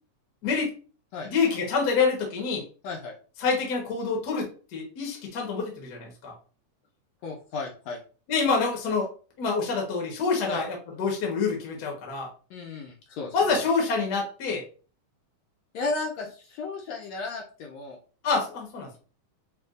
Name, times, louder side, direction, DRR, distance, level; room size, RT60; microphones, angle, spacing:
voice 1, 1.2-2.6 3.4-6.3 8.3-9.1 9.4-12.3 13.3-14.6 18.2-19.0, left 4 dB, 55° left, 0 dB, 1.1 m, -27 dB
voice 2, 2.8-3.2 7.2-8.0 10.4-10.6 12.5-13.6 15.7-18.0, left 3 dB, 75° left, -1 dB, 1.7 m, -34 dB
6.8 x 2.4 x 2.5 m, 0.37 s
omnidirectional pair, 3.6 m